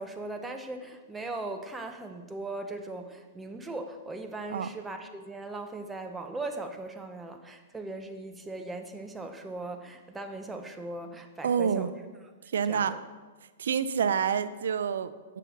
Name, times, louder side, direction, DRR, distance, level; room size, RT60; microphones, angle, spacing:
voice 1, 0.0-11.9 12.7-13.0, right 2 dB, 10° right, 6 dB, 0.6 m, -39 dB
voice 2, 11.4-11.9 12.5-13.0 13.6-15.4, right 7 dB, 80° right, 14 dB, 0.4 m, -28 dB
7.5 x 6.5 x 3.9 m, 1.4 s
hypercardioid pair, 140°, 0 cm